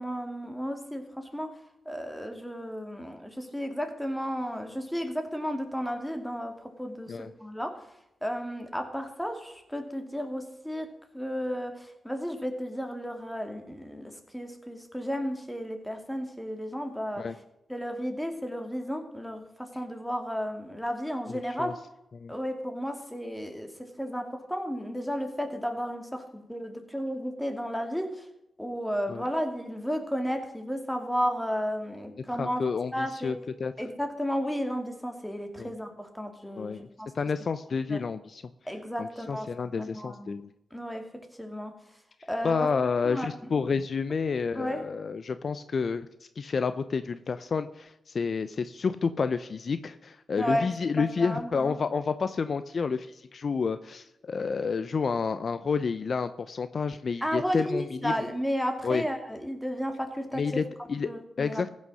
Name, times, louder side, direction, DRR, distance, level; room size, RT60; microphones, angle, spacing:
voice 1, 0.0-1.6 1.9-7.8 8.2-17.3 17.7-21.8 22.3-28.3 28.6-32.6 32.9-33.3 33.8-37.1 37.9-38.0 38.7-40.3 40.7-41.1 41.4-41.7 42.3-42.7 43.0-43.3 44.5-44.9 50.4-50.7 51.0-51.7 57.2-60.4 61.0-61.6, equal, 5° left, 5 dB, 2.5 m, -33 dB
voice 2, 21.3-21.7 22.1-22.3 29.1-29.2 32.3-33.7 35.6-35.7 36.6-36.8 37.1-38.4 39.0-40.5 42.4-46.1 46.4-58.2 58.8-59.0 60.3-61.1 61.4-61.7, left 5 dB, 55° left, 12 dB, 0.6 m, -30 dB
15.0 x 6.4 x 6.4 m, 0.86 s
cardioid pair, 60°, 0 cm